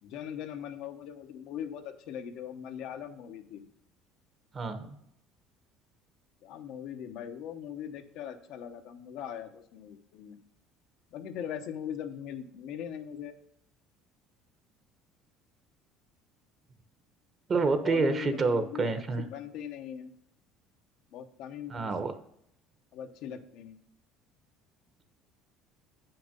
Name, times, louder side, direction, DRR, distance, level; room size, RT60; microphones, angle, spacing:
voice 1, 0.0-3.6 6.4-10.4 11.1-13.3 17.8-20.1 21.1-21.9 22.9-23.8, left 9 dB, 70° left, 6 dB, 0.9 m, -40 dB
voice 2, 4.5-4.9 17.5-19.2 21.7-22.1, right 4 dB, 30° right, 9 dB, 1.1 m, -28 dB
8.0 x 5.9 x 5.2 m, 0.72 s
cardioid pair, 115°, 0 cm